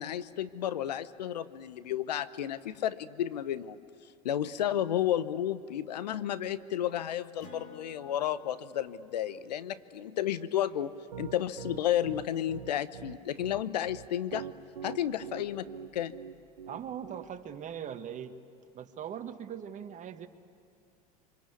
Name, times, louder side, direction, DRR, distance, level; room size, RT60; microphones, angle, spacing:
voice 1, 0.0-3.8 4.2-14.5 14.8-15.7 15.9-16.1, left 11 dB, 80° left, 14 dB, 0.9 m, -32 dB
Acoustic guitar, 7.4-12.4, left 4 dB, 35° left, 3.5 m, -55 dB
Piano, 11.1-17.6, right 9 dB, 85° right, 1.1 m, -43 dB
voice 2, 16.7-18.4 18.7-20.3, right 9 dB, 35° right, 8 dB, 1.7 m, -40 dB
27.0 x 25.0 x 8.4 m, 2.4 s
hypercardioid pair, 80°, 21 cm